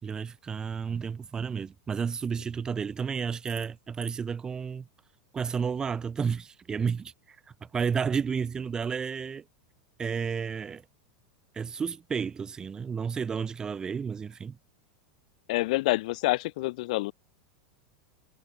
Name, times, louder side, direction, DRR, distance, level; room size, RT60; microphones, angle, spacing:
voice 1, 0.0-4.9 5.3-7.4 7.7-9.4 10.0-10.8 11.5-14.6, right 6 dB, 15° right, 3.3 m, -31 dB
voice 2, 15.5-17.1, left 20 dB, 60° left, 4.9 m, -27 dB
supercardioid pair, 155°, 5 cm